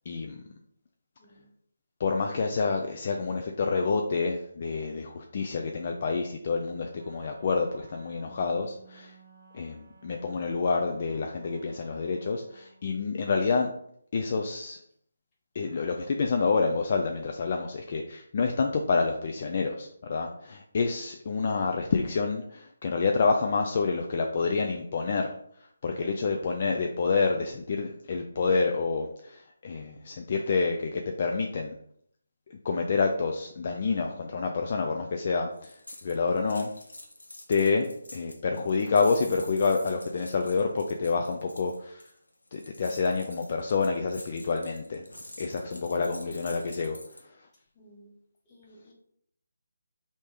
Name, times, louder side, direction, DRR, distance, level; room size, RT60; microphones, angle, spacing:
voice 1, 0.1-0.5 2.0-9.2 9.5-13.7 14.1-14.8 15.5-31.8 32.5-36.7 37.5-42.1 42.5-45.1 45.4-47.5, left 4 dB, 40° left, 3 dB, 0.3 m, -28 dB
voice 2, 1.2-1.5 47.7-48.1 48.4-48.9, right 1 dB, 20° left, -6 dB, 1.3 m, -56 dB
Wind instrument woodwind instrument, 6.9-13.0, right 4 dB, 60° right, 0.6 m, -56 dB
sound 1, 35.6-47.2, left 1 dB, 80° left, 0.8 m, -47 dB
3.3 x 2.7 x 3.2 m, 0.69 s
figure-of-eight pair, 155°, 0 cm